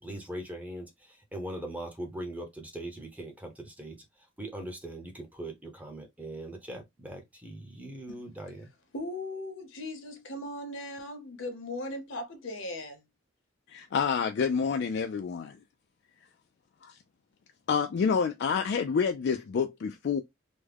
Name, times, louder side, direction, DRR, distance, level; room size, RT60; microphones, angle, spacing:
voice 1, 0.0-4.0 4.4-8.7, right 1 dB, 10° right, 0.7 m, -40 dB
voice 2, 8.9-13.0, left 1 dB, 75° left, 0.9 m, -38 dB
voice 3, 13.7-15.5 16.8-16.9 17.7-20.2, left 6 dB, 55° left, 0.3 m, -28 dB
3.5 x 2.1 x 3.3 m
head